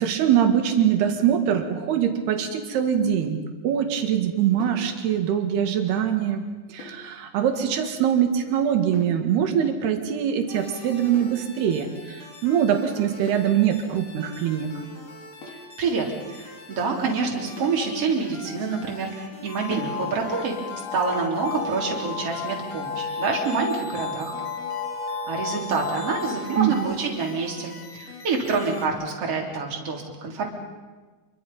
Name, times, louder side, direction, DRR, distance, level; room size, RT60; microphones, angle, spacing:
voice 1, 0.0-3.4 3.6-6.4 6.7-14.7 26.6-26.9, right 9 dB, 70° right, 5 dB, 3.7 m, -23 dB
sound 1, 4.6-4.9 6.8-7.1 8.9-9.2 11.1-11.4 13.3-13.6 15.4-15.7 17.6-17.9 19.7-20.0, left 3 dB, 60° left, 4.6 m, -43 dB
sound 2, 10.5-28.9, left 4 dB, 40° left, 4.0 m, -44 dB
voice 2, 15.5-20.6 20.9-24.3 25.3-30.4, right 4 dB, 35° right, -1 dB, 4.0 m, -27 dB
sound 3, 19.5-27.0, left 4 dB, 80° left, 3.9 m, -32 dB
27.5 x 24.0 x 5.5 m, 1.3 s
omnidirectional pair, 5.0 m